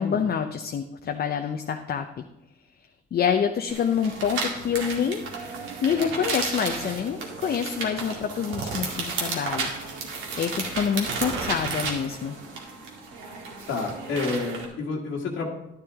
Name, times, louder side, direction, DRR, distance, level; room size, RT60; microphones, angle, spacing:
voice 1, 0.0-2.2 3.1-5.3 5.8-9.7 10.4-12.4, left 7 dB, 50° left, 5 dB, 0.7 m, -27 dB
sound 1, 3.7-14.6, right 4 dB, 90° right, 2.1 m, -33 dB
voice 2, 13.7-15.5, left 4 dB, 80° left, -2 dB, 1.8 m, -30 dB
10.5 x 10.5 x 3.6 m, 0.90 s
cardioid pair, 90°, 20 cm